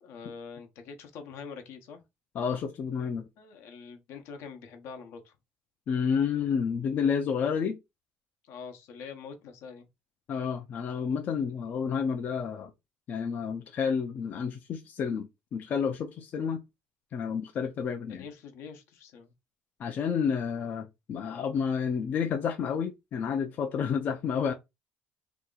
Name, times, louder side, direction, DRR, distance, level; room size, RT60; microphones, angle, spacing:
voice 1, 0.0-2.0 3.4-5.3 8.4-9.9 18.1-19.3, left 5 dB, 70° left, 0.8 m, -44 dB
voice 2, 2.3-3.2 5.9-7.8 10.3-12.7 13.1-16.6 17.1-18.3 19.8-24.5, left 6 dB, 40° left, 0.4 m, -30 dB
2.8 x 2.4 x 3.7 m
cardioid pair, 155°, 4 cm